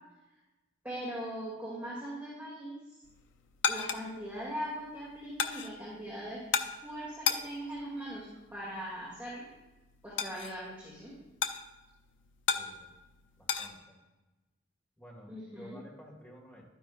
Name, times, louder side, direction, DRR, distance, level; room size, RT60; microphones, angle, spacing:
voice 1, 0.8-3.0 3.7-6.5 6.8-9.5 10.0-11.1 15.3-15.8, equal, 10° right, -9 dB, 2.4 m, -40 dB
sound 1, 3.0-13.7, left 6 dB, 70° left, 0.6 m, -37 dB
voice 2, 12.5-13.0 13.4-14.0 15.0-16.7, equal, 10° left, -3 dB, 1.9 m, -52 dB
11.5 x 9.9 x 2.5 m, 1.1 s
head